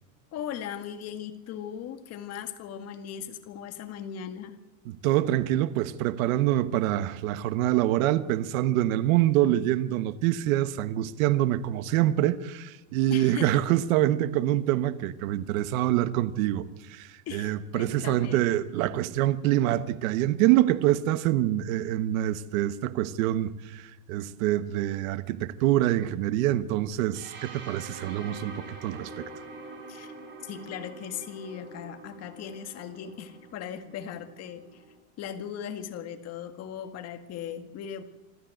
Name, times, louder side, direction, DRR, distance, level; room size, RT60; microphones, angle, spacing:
voice 1, 0.3-4.6 13.1-13.6 17.3-18.4 29.9-30.1 30.4-34.8 35.2-38.0, left 9 dB, 35° left, 1.9 m, -38 dB
voice 2, 4.8-29.3, right 13 dB, 70° right, 1.3 m, -25 dB
sound 1, 27.1-35.0, right 2 dB, 25° right, 6.1 m, -45 dB
26.0 x 13.0 x 7.9 m
supercardioid pair, 155°, 42 cm